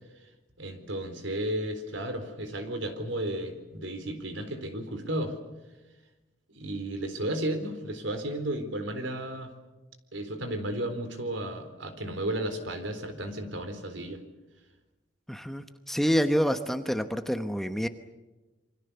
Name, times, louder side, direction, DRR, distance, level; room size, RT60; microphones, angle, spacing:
voice 1, 0.6-5.4 6.5-9.5 10.1-14.2, right 1 dB, 75° right, 8 dB, 4.0 m, -33 dB
voice 2, 15.3-17.9, equal, ahead, 8 dB, 1.0 m, -27 dB
28.0 x 24.5 x 6.9 m, 1.1 s
head